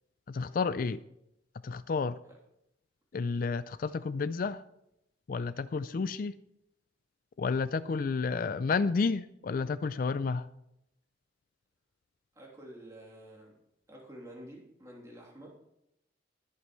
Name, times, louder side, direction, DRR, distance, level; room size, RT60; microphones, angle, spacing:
voice 1, 0.3-1.0 1.6-2.2 3.1-4.6 5.3-6.3 7.4-10.5, left 4 dB, 45° left, 14 dB, 0.4 m, -31 dB
voice 2, 12.3-13.5 13.9-15.6, right 1 dB, 15° right, -3 dB, 3.1 m, -49 dB
21.5 x 8.4 x 3.2 m, 0.82 s
head